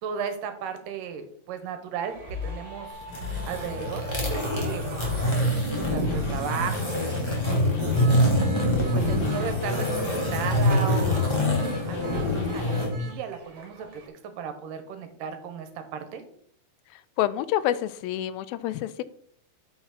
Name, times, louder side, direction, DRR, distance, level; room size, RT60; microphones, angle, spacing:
voice 1, 0.0-3.0 3.4-5.5 5.8-7.2 7.8-16.2, right 7 dB, 75° right, 8 dB, 2.4 m, -36 dB
sound 1, 2.1-14.1, left 2 dB, 50° right, 2.0 m, -40 dB
sound 2, 3.0-12.9, left 1 dB, 15° left, 0.9 m, -25 dB
Electric guitar, 5.8-13.1, left 3 dB, 55° left, 3.0 m, -38 dB
voice 2, 17.2-19.0, left 13 dB, 85° left, 15 dB, 2.3 m, -27 dB
8.4 x 5.7 x 4.0 m, 0.63 s
omnidirectional pair, 4.2 m